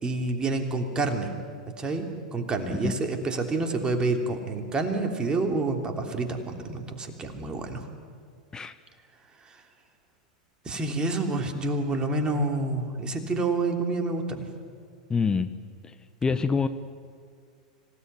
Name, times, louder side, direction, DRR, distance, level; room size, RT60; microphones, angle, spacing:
voice 1, 0.0-1.3 1.8-7.9 9.4-9.6 10.6-14.5, right 3 dB, 20° right, 4 dB, 3.2 m, -28 dB
voice 2, 15.1-15.5 15.8-15.9 16.2-16.7, left 5 dB, 20° left, 11 dB, 1.0 m, -25 dB
26.0 x 17.0 x 9.6 m, 2.1 s
hypercardioid pair, 90°, 4 cm